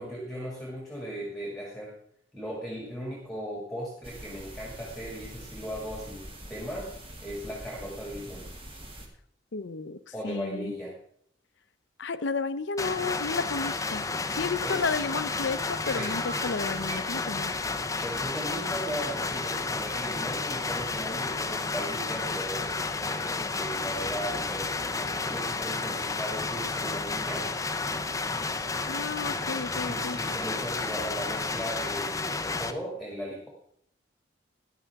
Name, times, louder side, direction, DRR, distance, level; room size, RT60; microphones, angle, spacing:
voice 1, 0.0-2.0 2.3-6.9 7.2-8.5 10.1-11.0 14.6-14.9 15.9-16.2 18.0-27.5 29.8-33.5, equal, ahead, -2 dB, 2.1 m, -37 dB
sound 1, 4.0-9.1, right 1 dB, 30° right, 1.9 m, -44 dB
voice 2, 9.5-10.0 10.2-10.7 12.0-17.5 28.9-30.2, left 4 dB, 75° left, 13 dB, 0.6 m, -32 dB
sound 2, 12.8-32.7, left 3 dB, 15° left, 0.6 m, -31 dB
Bird, 14.7-17.6, right 1 dB, 85° right, 4.1 m, -44 dB
14.5 x 11.0 x 3.6 m, 0.69 s
head